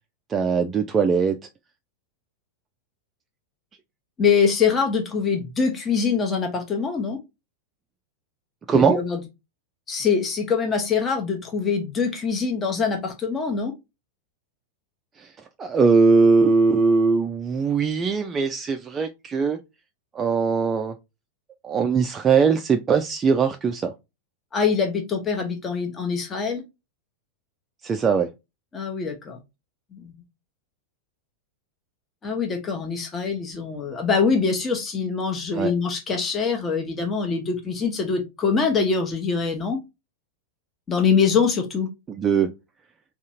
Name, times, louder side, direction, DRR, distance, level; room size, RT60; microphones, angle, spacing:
voice 1, 0.3-1.4 8.7-9.0 15.2-15.3 15.6-19.6 20.1-20.9 21.6-23.9 27.8-28.3 35.5-35.7 42.1-42.5, right 5 dB, 20° right, 0.3 m, -20 dB
voice 2, 4.2-7.2 8.7-9.2 9.9-13.7 24.5-26.6 28.7-29.4 29.9-30.1 32.2-39.8 40.9-41.9, left 5 dB, 20° left, 0.7 m, -24 dB
3.7 x 2.4 x 2.7 m
figure-of-eight pair, 90°, 0 cm